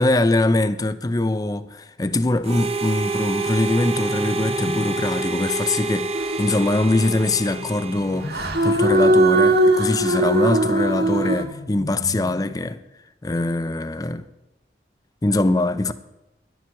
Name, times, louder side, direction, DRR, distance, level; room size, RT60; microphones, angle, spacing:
voice 1, 0.0-6.1 6.4-12.8 13.2-14.3 15.2-15.9, left 2 dB, 20° left, 0.5 m, -22 dB
Harmonica, 2.4-8.8, right 3 dB, 35° right, 0.6 m, -28 dB
sound 1, 3.4-5.4 7.1-9.0 10.8-12.8, left 1 dB, 65° left, 2.0 m, -38 dB
sound 2, 6.1-6.8 8.3-11.4, right 1 dB, 65° right, 1.2 m, -19 dB
11.0 x 7.1 x 9.1 m
head